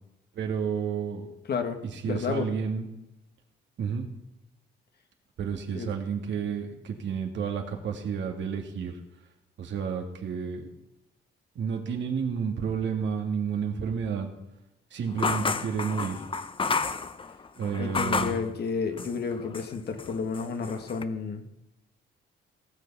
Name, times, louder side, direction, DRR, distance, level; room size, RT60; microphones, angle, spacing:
voice 1, 0.3-1.3 1.8-2.9 3.8-4.1 5.4-9.0 9.6-10.7 11.6-14.3 14.9-16.3 17.6-18.4, right 6 dB, 65° right, 4 dB, 2.4 m, -31 dB
voice 2, 1.5-1.8 2.1-2.5 5.7-5.9 17.8-21.5, left 5 dB, 55° left, 7 dB, 1.8 m, -31 dB
sound 1, 15.2-18.5 19.0-19.7 20.0-21.0, left 4 dB, 25° left, 0.7 m, -31 dB
18.0 x 6.7 x 5.6 m, 0.92 s
cardioid pair, 90°, 20 cm